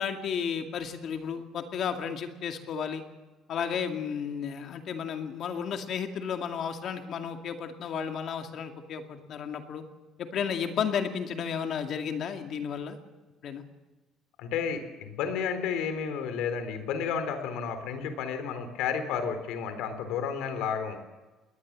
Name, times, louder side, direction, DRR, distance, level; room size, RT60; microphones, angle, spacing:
voice 1, 0.0-3.0 3.5-9.8 10.2-13.0 13.4-13.6, left 7 dB, 45° left, 6 dB, 2.2 m, -33 dB
voice 2, 14.4-21.0, left 7 dB, 80° left, 9 dB, 3.8 m, -31 dB
21.0 x 19.0 x 7.5 m, 1.2 s
cardioid pair, 170°, 0 cm